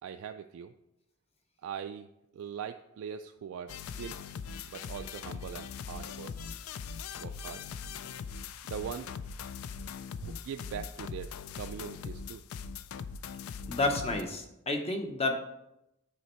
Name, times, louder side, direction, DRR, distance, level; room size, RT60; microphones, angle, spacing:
voice 1, 0.0-0.7 1.6-2.1 2.3-4.2 4.6-6.3 7.2-7.6 8.6-9.1 10.2-12.4, right 8 dB, 75° right, 7 dB, 0.3 m, -41 dB
sound 1, 3.7-14.2, left 6 dB, 80° left, 0.4 m, -41 dB
voice 2, 13.7-15.3, left 2 dB, 30° left, 5 dB, 0.8 m, -30 dB
8.3 x 4.3 x 4.3 m, 0.87 s
head